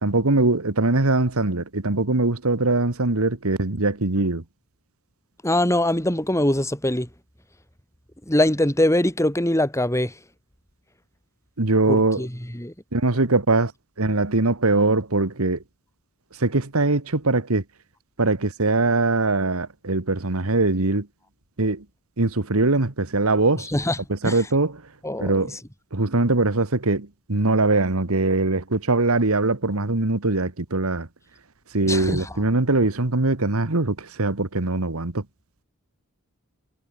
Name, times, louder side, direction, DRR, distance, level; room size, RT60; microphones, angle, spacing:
voice 1, 0.0-4.4 11.6-12.3 12.9-13.7 14.0-15.6 16.4-17.6 18.2-21.1 21.6-21.8 22.2-23.7 24.1-24.8 25.2-25.6 25.9-31.1 31.7-35.2, right 2 dB, 75° right, 1.7 m, -22 dB
voice 2, 5.4-7.1 8.3-10.1 11.9-12.7 23.7-24.0 24.2-24.4 25.0-25.5 31.9-32.3, left 1 dB, 15° left, 5.7 m, -22 dB
head